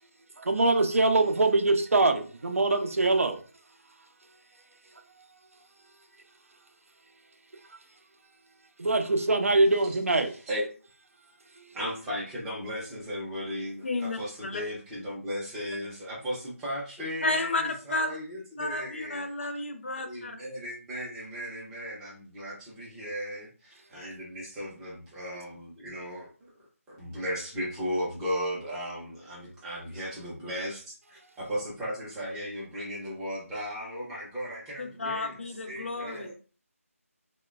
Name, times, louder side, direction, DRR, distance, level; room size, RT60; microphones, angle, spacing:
voice 1, 0.4-3.4 8.8-10.3 11.6-11.7 36.2-36.3, right 2 dB, 65° right, 0.5 m, -23 dB
voice 2, 11.7-19.3 19.9-26.5 26.9-35.4 35.6-36.3, equal, 5° right, 0.5 m, -36 dB
voice 3, 13.8-14.6 17.2-18.2 18.6-20.4 34.8-36.3, left 2 dB, 55° left, 0.5 m, -32 dB
3.0 x 2.1 x 2.3 m
figure-of-eight pair, 160°, 8 cm